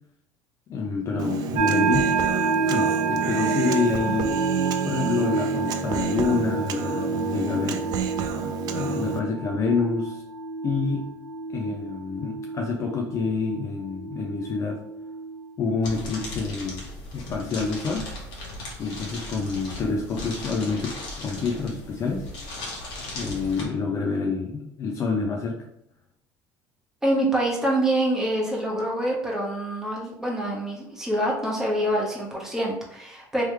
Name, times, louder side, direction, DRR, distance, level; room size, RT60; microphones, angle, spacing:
voice 1, 0.7-2.1 2.7-4.3 4.8-7.8 8.7-10.2 10.6-11.1 11.5-14.8 15.6-16.9 17.1-18.1 18.8-20.9 21.2-22.3 23.1-25.6, left 4 dB, 40° left, 1 dB, 0.5 m, -27 dB
Human voice, 1.2-9.2, right 6 dB, 55° right, 0.4 m, -29 dB
sound 1, 1.5-15.4, right 4 dB, 90° right, 0.6 m, -29 dB
sound 2, 15.8-23.6, left 2 dB, 65° left, 1.3 m, -37 dB
voice 2, 27.0-33.4, right 1 dB, 5° right, -4 dB, 1.2 m, -26 dB
3.2 x 3.1 x 3.3 m, 0.76 s
cardioid pair, 125°, 8 cm